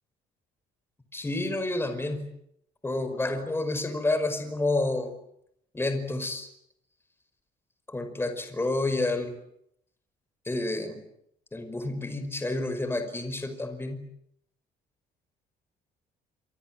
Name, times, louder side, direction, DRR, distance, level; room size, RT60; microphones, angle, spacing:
voice 1, 1.1-2.3 2.8-5.1 5.7-6.5 7.9-9.3 10.5-11.0 11.5-14.1, left 2 dB, 15° left, 8 dB, 5.2 m, -29 dB
28.5 x 24.5 x 7.7 m, 0.74 s
cardioid pair, 110°, 17 cm